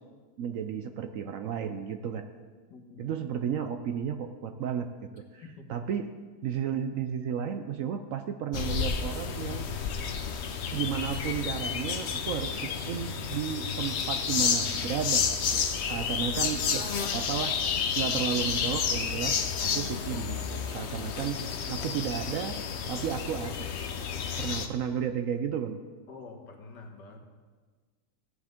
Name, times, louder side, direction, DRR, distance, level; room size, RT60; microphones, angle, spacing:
voice 1, 0.4-2.2 3.0-4.9 5.1-5.4 5.7-6.1 6.4-9.7 10.7-15.3 15.5-15.6 15.9-17.5 18.0-21.4 21.7-22.6 22.9-23.7 24.4-25.8, right 8 dB, 65° right, 7 dB, 0.8 m, -33 dB
voice 2, 2.7-3.2 5.4-5.7 26.1-27.2, left 3 dB, 85° left, 1 dB, 2.0 m, -47 dB
sound 1, 8.5-24.7, left 6 dB, 55° left, 0.8 m, -31 dB
15.5 x 10.0 x 3.6 m, 1.4 s
omnidirectional pair, 1.8 m